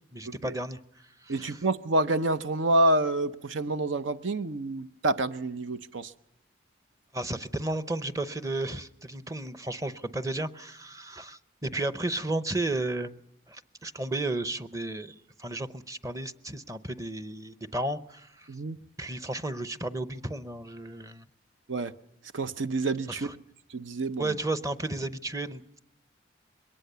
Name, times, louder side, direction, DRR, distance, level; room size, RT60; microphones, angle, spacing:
voice 1, 0.1-0.8 1.2-1.6 7.1-13.1 13.5-18.5 19.0-21.3 23.1-23.4 24.2-25.8, right 2 dB, 15° right, 0.7 m, -33 dB
voice 2, 1.3-6.1 18.5-18.8 21.7-21.9 22.3-23.3 23.7-24.3, right 2 dB, 80° right, 0.7 m, -28 dB
22.5 x 18.5 x 6.8 m
head